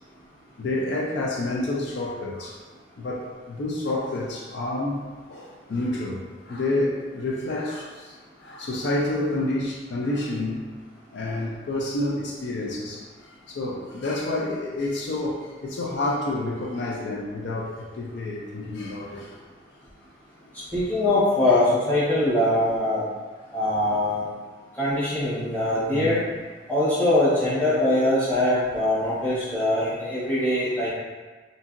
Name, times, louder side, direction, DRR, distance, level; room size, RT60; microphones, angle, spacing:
voice 1, 0.6-2.5 3.0-5.0 5.3-6.2 6.5-8.1 8.4-10.7 11.1-13.0 13.5-19.3 25.9-26.2, left 2 dB, 70° left, -3 dB, 0.4 m, -29 dB
voice 2, 20.7-23.1 23.5-24.3 24.8-26.2 26.7-30.9, left 1 dB, 10° left, -11 dB, 1.0 m, -22 dB
2.8 x 2.5 x 2.5 m, 1.4 s
head